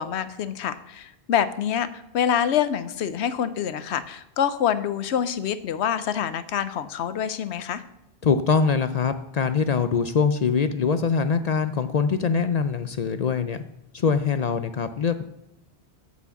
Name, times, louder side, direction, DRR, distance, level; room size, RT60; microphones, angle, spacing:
voice 1, 0.0-7.8, left 9 dB, 80° left, 13 dB, 0.9 m, -26 dB
voice 2, 8.2-13.6 13.9-15.2, left 5 dB, 50° left, 10 dB, 0.5 m, -23 dB
8.2 x 6.2 x 7.0 m, 0.86 s
omnidirectional pair, 1.1 m